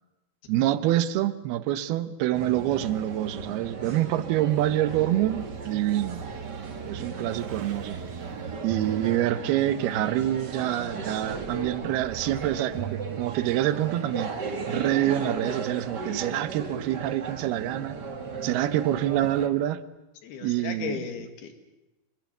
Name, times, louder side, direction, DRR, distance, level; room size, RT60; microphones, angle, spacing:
voice 1, 0.5-6.2 6.8-8.0 8.6-14.3 14.7-18.0 18.4-19.8 20.4-21.0, right 13 dB, 80° right, 12 dB, 2.9 m, -26 dB
sound 1, 2.3-19.5, right 4 dB, 40° right, 1.8 m, -36 dB
sound 2, 5.3-10.0 10.7-14.0 14.8-14.9, right 10 dB, 60° right, 2.5 m, -43 dB
voice 2, 20.2-21.5, left 7 dB, 90° left, 7 dB, 4.1 m, -36 dB
25.5 x 21.0 x 8.2 m, 1.0 s
omnidirectional pair, 4.5 m